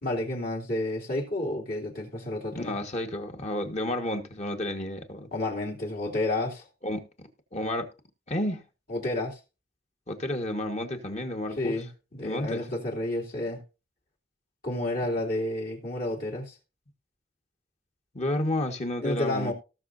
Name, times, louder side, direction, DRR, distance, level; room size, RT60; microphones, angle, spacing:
voice 1, 0.0-2.8 5.3-6.6 8.9-9.4 11.6-13.6 14.6-16.5 19.0-19.5, left 1 dB, 55° left, 3.0 m, -30 dB
voice 2, 2.5-5.3 6.8-7.9 8.3-8.6 10.1-11.8 12.2-12.6 18.1-19.5, left 1 dB, 40° left, 1.7 m, -31 dB
18.5 x 6.4 x 2.7 m
head